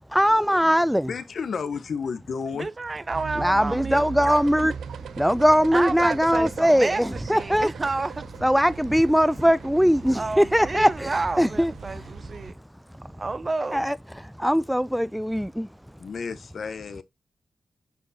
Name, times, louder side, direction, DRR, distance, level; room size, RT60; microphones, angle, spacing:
voice 1, 0.1-1.1 3.4-4.7 5.2-7.7 8.4-12.0 13.7-15.7, equal, ahead, 0.4 m, -21 dB
voice 2, 1.1-2.7 16.0-17.0, left 5 dB, 70° left, 0.8 m, -31 dB
voice 3, 2.5-4.1 5.7-8.3 10.1-12.5 13.2-13.9, right 3 dB, 40° right, 0.7 m, -30 dB
sound 1, 3.1-12.5, right 7 dB, 80° right, 0.5 m, -38 dB
9.4 x 3.8 x 2.7 m
supercardioid pair, 40°, 0 cm